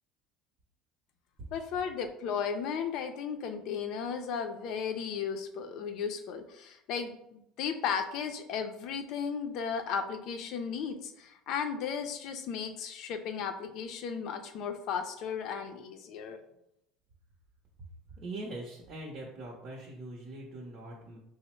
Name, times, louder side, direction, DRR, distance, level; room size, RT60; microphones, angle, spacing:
voice 1, 1.5-16.4, left 6 dB, 60° left, 7 dB, 0.5 m, -35 dB
voice 2, 18.1-21.2, right 2 dB, 45° right, -3 dB, 0.8 m, -42 dB
5.0 x 2.0 x 3.0 m, 0.81 s
cardioid pair, 135°, 0 cm